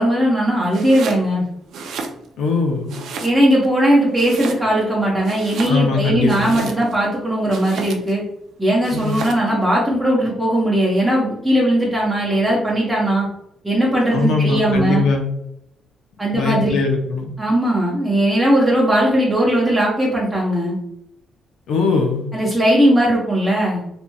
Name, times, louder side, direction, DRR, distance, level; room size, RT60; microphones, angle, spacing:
voice 1, 0.0-1.4 3.2-8.2 8.6-13.3 13.6-15.1 16.2-16.8 17.4-20.8 22.3-23.8, right 1 dB, 5° right, -6 dB, 0.8 m, -18 dB
Domestic sounds home sounds, 0.7-1.3 1.6-2.5 2.9-3.7 4.1-4.9 5.2-7.0 7.5-8.2 8.8-9.5, right 4 dB, 75° right, 0.4 m, -32 dB
voice 2, 2.4-2.9 5.7-6.6 8.9-9.3 14.1-15.3 16.3-17.3 21.7-22.3, left 4 dB, 75° left, 2 dB, 0.6 m, -20 dB
3.0 x 2.5 x 2.2 m, 0.76 s
cardioid pair, 90°, 0 cm